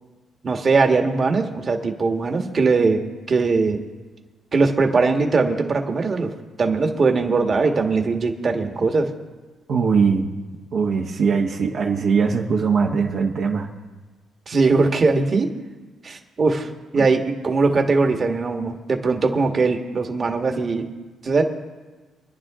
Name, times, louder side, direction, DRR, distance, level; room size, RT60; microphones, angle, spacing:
voice 1, 0.4-3.8 4.5-6.3 6.6-9.1 14.5-15.5 16.0-20.9 21.2-21.4, right 4 dB, 40° right, 4 dB, 1.6 m, -20 dB
voice 2, 9.7-10.3 10.7-13.7 16.9-17.0, right 5 dB, 65° right, -1 dB, 1.4 m, -21 dB
25.0 x 10.5 x 3.7 m, 1.3 s
cardioid pair, 90°, 0 cm